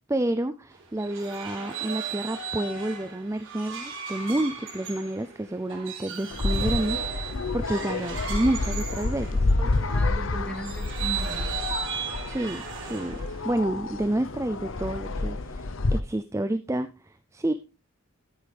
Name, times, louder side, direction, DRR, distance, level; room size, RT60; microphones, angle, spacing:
voice 1, 0.1-9.5 12.3-17.5, right 1 dB, 15° right, 10 dB, 0.5 m, -29 dB
sound 1, 0.7-9.9 10.5-13.5, right 7 dB, 65° right, 4.1 m, -36 dB
sound 2, 6.3-16.0, left 2 dB, 65° left, 0.8 m, -29 dB
voice 2, 9.6-11.5, equal, 5° left, 5 dB, 1.6 m, -37 dB
13.5 x 8.7 x 3.4 m, 0.30 s
head